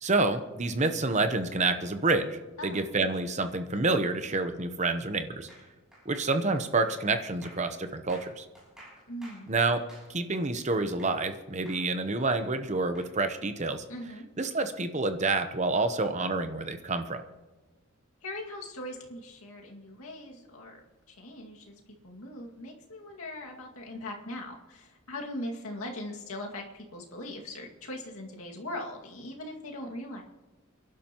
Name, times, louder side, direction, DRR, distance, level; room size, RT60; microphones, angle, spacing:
voice 1, 0.0-5.5 6.1-8.4 9.5-9.8 10.1-13.8 14.4-17.2, right 3 dB, 30° right, 8 dB, 0.8 m, -28 dB
sound 1, 5.5-11.3 11.7-13.1, equal, 5° right, 6.3 m, -53 dB
voice 2, 9.1-9.5 13.9-14.3 18.2-20.8 21.1-30.2, left 1 dB, 80° left, 0 dB, 2.2 m, -40 dB
29.5 x 11.0 x 3.0 m, 1.2 s
head